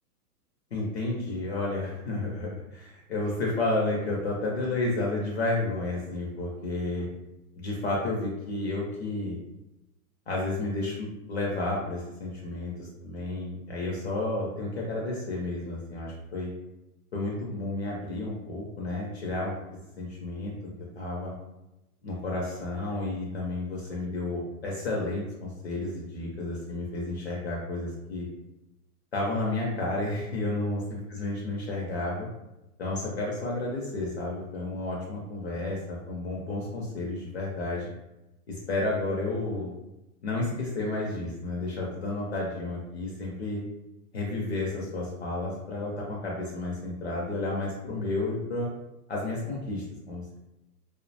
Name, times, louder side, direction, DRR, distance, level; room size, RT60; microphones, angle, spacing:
voice 1, 0.7-7.1 7.6-9.4 10.3-16.5 17.1-19.5 20.0-20.5 20.9-21.3 22.0-28.3 29.1-32.3 32.8-37.9 38.5-39.7 40.2-43.6 44.1-48.7 49.1-50.4, left 2 dB, 45° left, -3 dB, 0.4 m, -31 dB
2.6 x 2.1 x 2.6 m, 0.95 s
hypercardioid pair, 175°, 46 cm